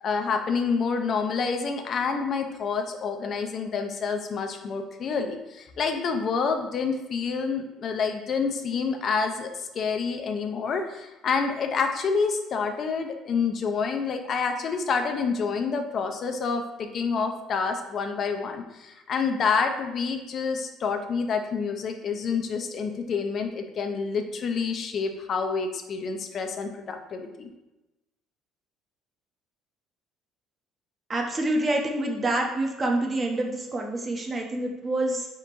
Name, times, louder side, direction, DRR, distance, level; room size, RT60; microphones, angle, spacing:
voice 1, 0.0-27.5, left 5 dB, 45° left, 5 dB, 0.4 m, -28 dB
voice 2, 31.1-35.3, right 2 dB, 25° right, 2 dB, 0.6 m, -27 dB
3.8 x 3.6 x 2.9 m, 1.0 s
cardioid pair, 115°, 0 cm